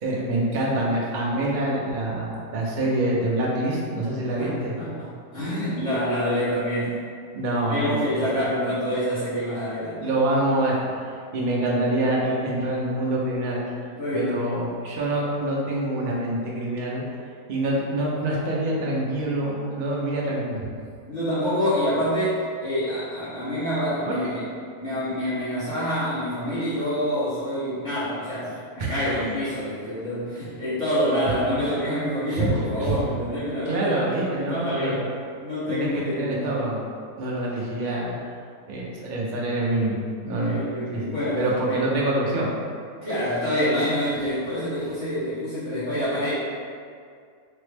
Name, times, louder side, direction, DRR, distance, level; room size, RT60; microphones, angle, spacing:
voice 1, 0.0-4.7 7.3-8.5 9.7-10.7 11.3-13.6 14.1-17.0 17.5-20.6 24.1-24.4 28.8-28.9 32.3-33.0 33.7-35.0 35.7-36.8 37.2-38.2 38.7-40.6 40.9-42.5, right 1 dB, 85° right, -4 dB, 0.4 m, -26 dB
voice 2, 4.4-7.0 7.7-10.1 14.0-14.5 21.1-24.4 24.8-35.1 35.4-36.5 40.3-41.4 41.7-41.8 43.0-46.3, equal, 35° left, -14 dB, 1.0 m, -27 dB
3.5 x 2.0 x 3.2 m, 2.2 s
omnidirectional pair, 1.6 m